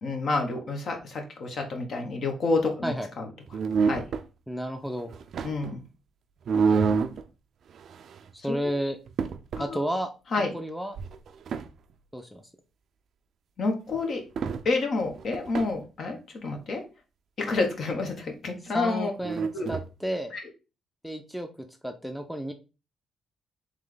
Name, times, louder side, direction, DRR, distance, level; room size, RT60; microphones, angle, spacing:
voice 1, 0.0-3.3 3.8-4.0 5.4-5.8 8.5-8.6 9.6-9.8 10.3-10.5 13.6-14.2 14.6-16.8 17.4-19.1 19.5-19.7 20.3-20.4, left 3 dB, 60° left, 3 dB, 1.1 m, -29 dB
sound 1, 3.5-4.2 5.0-5.8 6.5-7.2 7.7-8.3 8.7-8.8 9.1-9.7 11.0-11.7 13.9-14.0 14.4-14.6 15.0-15.7 19.2-19.9, right 5 dB, 60° right, 0.4 m, -28 dB
voice 2, 4.5-5.1 8.4-9.0 9.6-10.1 10.5-11.0 12.1-12.4 18.7-20.4 21.0-21.5 21.8-22.5, equal, ahead, 6 dB, 0.5 m, -31 dB
3.3 x 3.3 x 3.8 m, 0.31 s
cardioid pair, 90°, 0 cm